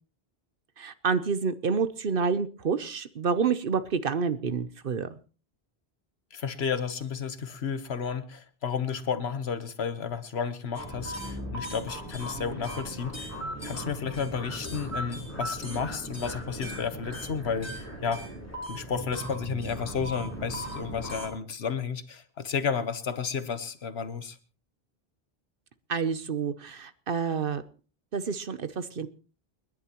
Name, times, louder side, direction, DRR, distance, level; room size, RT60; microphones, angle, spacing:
voice 1, 0.8-5.1 25.9-27.6 28.1-29.1, right 5 dB, 60° right, 13 dB, 1.0 m, -28 dB
voice 2, 6.3-13.3 13.6-18.2 18.7-24.4, left 6 dB, 85° left, 11 dB, 1.3 m, -32 dB
sound 1, 10.7-21.3, equal, 15° left, 4.1 m, -38 dB
29.0 x 10.5 x 3.0 m, 0.36 s
omnidirectional pair, 1.0 m